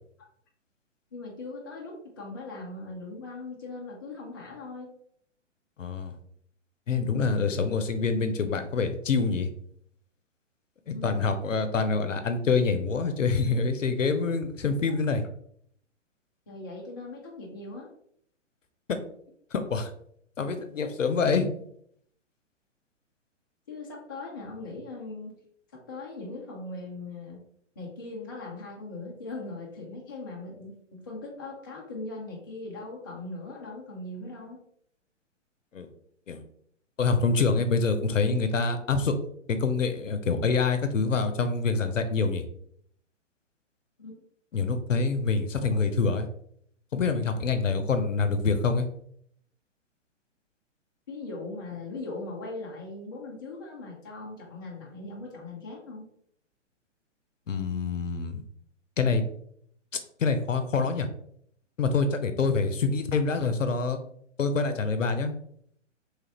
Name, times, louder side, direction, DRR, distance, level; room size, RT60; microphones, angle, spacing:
voice 1, 1.1-4.9 10.9-11.1 14.8-14.9 16.5-17.9 23.7-25.4 25.7-27.4 27.8-34.6 44.0-44.2 45.6-45.8 51.1-56.1, left 2 dB, 20° left, -1 dB, 0.3 m, -40 dB
voice 2, 5.8-6.1 6.9-9.5 10.9-15.2 18.9-19.0 19.5-19.9 20.4-21.5 35.7-35.9 36.3-36.4 37.0-39.1 39.5-42.4 44.5-46.3 46.9-48.9 57.5-58.4 59.0-59.3 60.2-61.1 61.8-64.0 64.4-65.3, left 4 dB, 85° left, 8 dB, 0.6 m, -26 dB
3.1 x 2.5 x 2.9 m, 0.67 s
figure-of-eight pair, 120°, 37 cm